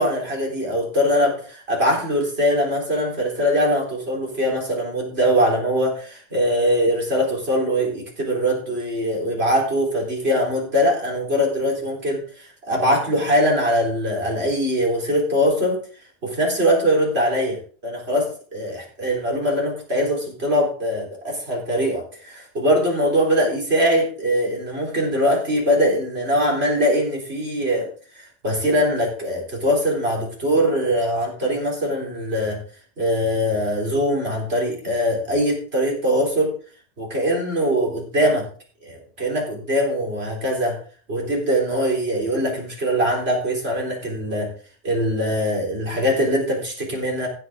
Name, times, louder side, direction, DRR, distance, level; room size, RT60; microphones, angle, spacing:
voice 1, 0.0-15.8 16.2-27.9 28.1-32.6 33.0-36.5 37.0-38.5 38.8-40.8 41.1-44.5 44.8-47.3, equal, 65° right, -1 dB, 4.4 m, -22 dB
15.5 x 8.3 x 3.7 m, 0.42 s
omnidirectional pair, 1.1 m